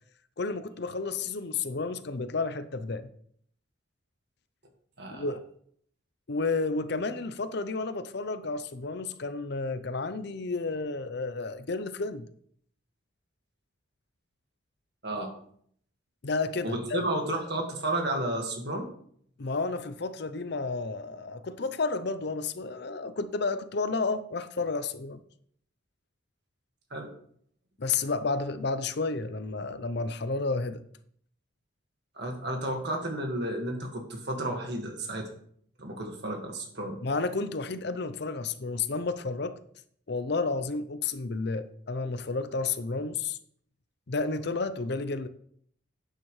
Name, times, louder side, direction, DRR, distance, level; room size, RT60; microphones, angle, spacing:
voice 1, 0.4-3.1 5.1-5.4 6.3-12.3 16.2-17.0 19.4-25.2 27.8-30.8 37.0-39.6 40.1-43.4 44.1-45.3, left 3 dB, 55° left, 0.6 m, -31 dB
voice 2, 16.6-18.9 26.9-27.1 32.2-35.3 35.8-37.0, right 1 dB, 55° right, 1.9 m, -32 dB
11.5 x 9.0 x 3.2 m
head